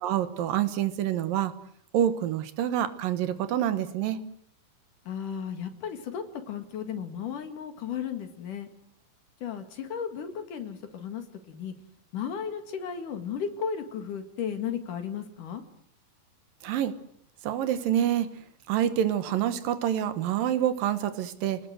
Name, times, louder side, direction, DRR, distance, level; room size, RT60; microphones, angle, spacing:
voice 1, 0.0-1.5 1.9-4.2 16.6-16.9 17.4-18.3 18.7-21.6, right 10 dB, 75° right, 11 dB, 2.8 m, -27 dB
voice 2, 5.1-8.7 9.4-11.7 12.1-15.6, left 7 dB, 65° left, 7 dB, 3.5 m, -35 dB
29.0 x 19.0 x 7.9 m, 0.68 s
omnidirectional pair, 4.2 m